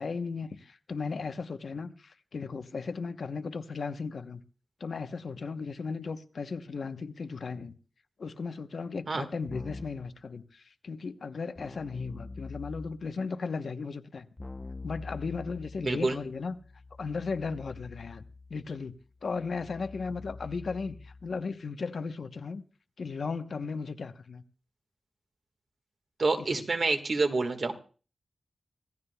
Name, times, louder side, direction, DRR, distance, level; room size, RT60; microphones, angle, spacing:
voice 1, 0.0-4.4 4.8-7.7 8.2-14.3 14.8-16.6 17.0-18.2 18.5-19.0 19.2-22.6 23.0-24.4 26.4-26.5, left 4 dB, 70° left, 0.9 m, -36 dB
Keyboard (musical), 9.5-10.1 11.6-13.1 14.4-21.4, left 3 dB, 25° left, 0.7 m, -45 dB
voice 2, 15.8-16.2 26.2-27.7, right 3 dB, 50° right, 1.6 m, -27 dB
25.0 x 16.0 x 2.3 m
wide cardioid pair, 130°, 0 cm